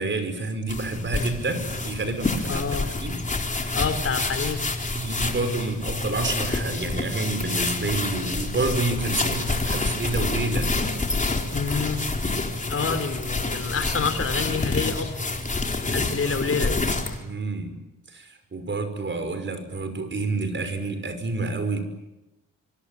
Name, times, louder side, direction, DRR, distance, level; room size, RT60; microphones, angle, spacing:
voice 1, 0.0-3.2 3.5-3.8 4.9-10.7 16.2-16.5 17.2-17.8 18.1-21.8, right 3 dB, 35° right, 9 dB, 5.8 m, -29 dB
sound 1, 0.7-17.2, left 3 dB, 25° left, 4.0 m, -28 dB
voice 2, 2.5-2.9 3.7-4.6 11.5-12.0 12.7-15.3 15.9-16.8, left 5 dB, 45° left, 10 dB, 3.4 m, -27 dB
25.0 x 25.0 x 9.4 m, 0.95 s
cardioid pair, 85°, 32 cm